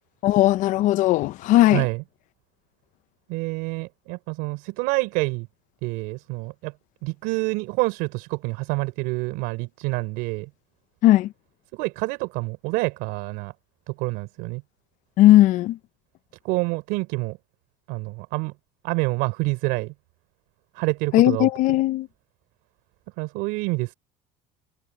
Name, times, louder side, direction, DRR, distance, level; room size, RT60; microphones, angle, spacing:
voice 1, 0.2-1.9 11.0-11.3 15.2-15.8 21.1-22.1, left 15 dB, 60° left, 0.7 m, -17 dB
voice 2, 1.7-2.0 3.3-5.5 5.8-6.7 7.0-10.5 11.7-13.5 13.9-14.6 16.4-17.4 17.9-18.5 18.8-19.9 20.8-21.5 23.2-23.9, right 25 dB, 85° right, 5.7 m, -27 dB
cardioid pair, 145°, 15 cm